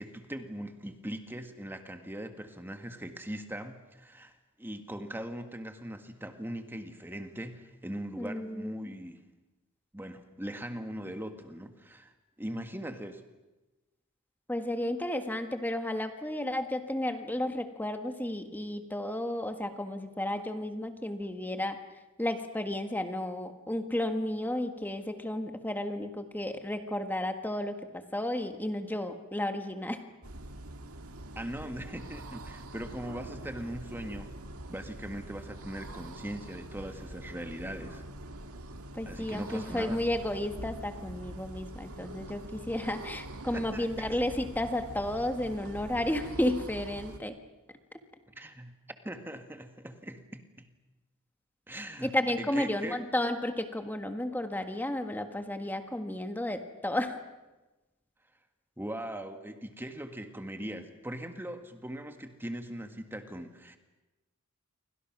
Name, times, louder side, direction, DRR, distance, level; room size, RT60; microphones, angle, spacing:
voice 1, 0.0-9.2 9.9-12.1 12.4-13.2 31.4-34.4 34.7-38.0 39.1-40.0 43.5-44.1 48.4-48.7 49.0-50.7 51.7-53.0 58.8-63.8, right 1 dB, 10° right, 6 dB, 1.8 m, -40 dB
voice 2, 8.2-8.9 14.5-21.8 22.2-30.0 38.9-47.3 52.0-57.2, left 1 dB, 10° left, 6 dB, 1.6 m, -32 dB
sound 1, 30.2-47.2, right 1 dB, 85° right, 1.8 m, -44 dB
28.0 x 24.5 x 6.2 m, 1.1 s
head